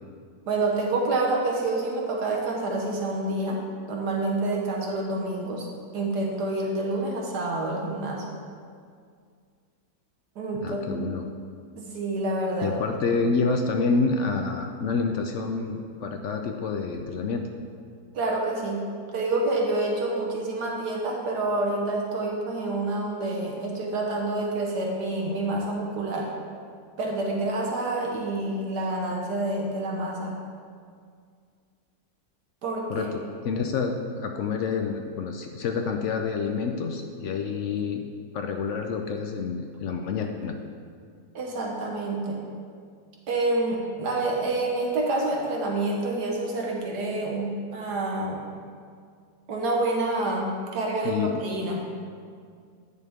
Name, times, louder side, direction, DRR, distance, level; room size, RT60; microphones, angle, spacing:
voice 1, 0.5-3.6 3.9-5.7 5.9-8.4 10.4-11.0 11.8-12.8 18.1-18.8 19.1-26.3 27.0-30.3 32.6-33.1 41.3-42.4 43.3-48.4 49.5-51.8, right 2 dB, 80° right, -1 dB, 1.5 m, -28 dB
voice 2, 10.6-11.3 12.6-17.4 32.9-38.0 38.3-40.5 51.0-51.4, left 4 dB, 75° left, 4 dB, 0.6 m, -28 dB
9.2 x 6.5 x 3.5 m, 2.2 s
omnidirectional pair, 1.8 m